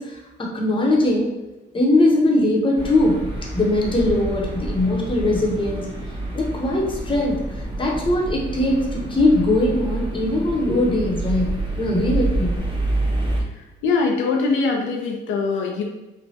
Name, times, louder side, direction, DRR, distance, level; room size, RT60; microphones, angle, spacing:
voice 1, 0.0-1.3 1.7-3.3 3.5-5.9 6.3-12.5, left 1 dB, 25° left, -2 dB, 0.7 m, -21 dB
sound 1, 2.7-13.4, right 2 dB, 25° right, 0.8 m, -28 dB
voice 2, 13.8-15.8, left 4 dB, 75° left, 1 dB, 0.4 m, -22 dB
3.1 x 2.1 x 2.7 m, 1.0 s
cardioid pair, 90°, 20 cm